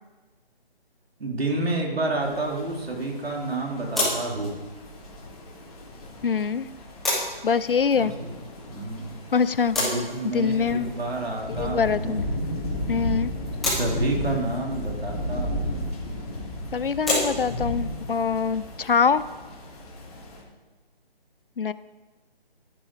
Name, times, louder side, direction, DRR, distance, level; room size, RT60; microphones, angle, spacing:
voice 1, 1.2-4.5 7.9-8.3 8.7-9.1 9.8-12.2 13.8-15.8, right 2 dB, 75° right, 0 dB, 4.0 m, -29 dB
sound 1, 2.2-20.4, left 1 dB, 40° left, 3.3 m, -35 dB
sound 2, 3.9-20.8, left 1 dB, ahead, 0.9 m, -34 dB
voice 2, 6.2-6.7 7.4-8.1 9.3-9.9 10.3-10.9 11.5-12.2 12.9-13.3 16.7-19.2 21.6-21.7, left 6 dB, 60° left, 16 dB, 0.7 m, -24 dB
14.0 x 11.5 x 5.0 m, 1.3 s
hypercardioid pair, 175°, 31 cm